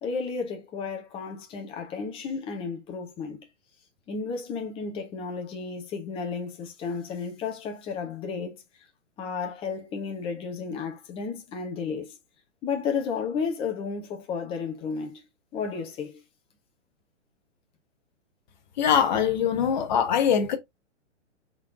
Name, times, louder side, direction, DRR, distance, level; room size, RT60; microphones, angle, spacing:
voice 1, 0.0-3.5 4.1-8.6 9.2-12.2 12.6-15.2 15.5-16.2, left 5 dB, 15° left, 0.9 m, -33 dB
voice 2, 18.8-20.6, left 8 dB, 40° left, 1.1 m, -22 dB
3.8 x 3.5 x 3.7 m
figure-of-eight pair, 115°, 36 cm